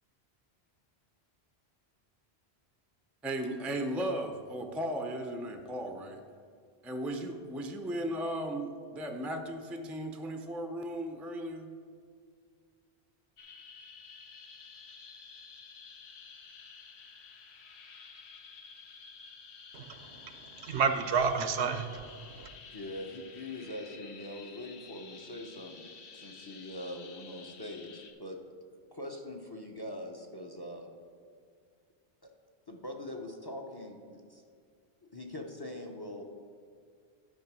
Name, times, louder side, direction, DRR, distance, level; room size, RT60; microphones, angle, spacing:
voice 1, 3.2-6.1 6.8-11.7, right 1 dB, ahead, 5 dB, 0.4 m, -36 dB
sound 1, 13.4-28.1, left 5 dB, 75° left, 1.1 m, -51 dB
voice 2, 19.7-22.5, right 5 dB, 80° right, 9 dB, 1.0 m, -31 dB
voice 3, 22.7-28.4 28.9-30.9 32.2-32.3 32.7-34.4 35.0-36.2, left 1 dB, 25° left, 3 dB, 0.7 m, -42 dB
11.0 x 5.0 x 6.1 m, 2.1 s
omnidirectional pair, 1.1 m